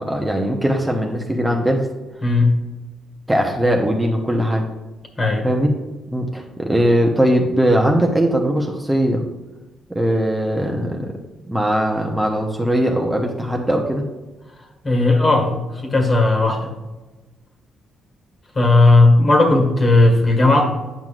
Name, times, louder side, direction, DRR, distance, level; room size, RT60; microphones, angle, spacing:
voice 1, 0.0-1.9 3.3-4.6 5.4-5.7 6.1-9.2 9.9-11.2 11.5-14.0, equal, 10° right, 1 dB, 0.9 m, -20 dB
voice 2, 14.8-16.7 18.6-20.7, left 2 dB, 35° left, 2 dB, 1.7 m, -15 dB
9.1 x 5.8 x 2.5 m, 1.1 s
cardioid pair, 90°, 0 cm